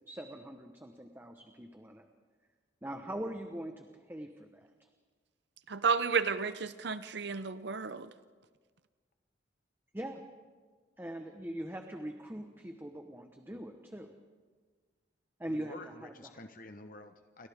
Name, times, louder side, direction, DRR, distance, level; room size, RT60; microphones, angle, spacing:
voice 1, 0.1-2.1 2.8-4.7 9.9-10.2 11.0-14.1 15.4-16.3, right 1 dB, 10° right, 1.1 m, -42 dB
voice 2, 5.7-8.1, right 5 dB, 60° right, 0.7 m, -32 dB
voice 3, 15.5-17.5, left 2 dB, 45° left, 1.0 m, -49 dB
30.0 x 25.0 x 3.6 m
head